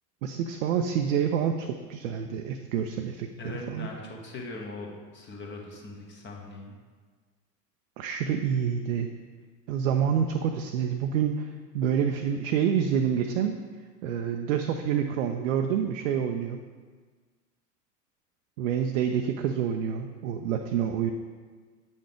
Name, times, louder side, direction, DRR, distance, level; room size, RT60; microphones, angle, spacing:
voice 1, 0.2-3.9 8.0-9.1 9.7-13.6 14.0-16.6 18.6-21.1, right 8 dB, 55° right, 5 dB, 0.6 m, -27 dB
voice 2, 3.4-6.8, left 2 dB, 25° left, 0 dB, 1.1 m, -40 dB
7.9 x 5.3 x 3.5 m, 1.5 s
figure-of-eight pair, 85°, 49 cm